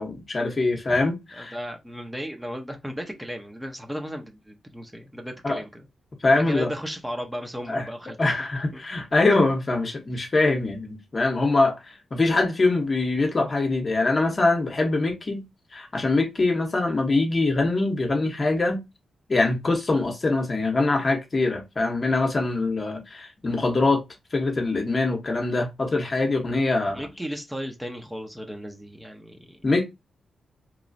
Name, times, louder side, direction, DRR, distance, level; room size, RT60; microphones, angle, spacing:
voice 1, 0.0-1.5 5.4-5.6 6.2-6.7 7.7-7.8 8.2-15.4 15.7-18.8 19.3-24.0 24.3-27.0 29.6-29.8, left 3 dB, 40° left, 0.9 m, -23 dB
voice 2, 1.3-5.8 6.3-8.5 8.7-8.8 10.1-10.3 26.8-29.6, equal, 5° right, 0.7 m, -35 dB
3.0 x 2.3 x 2.6 m
cardioid pair, 65°, 0 cm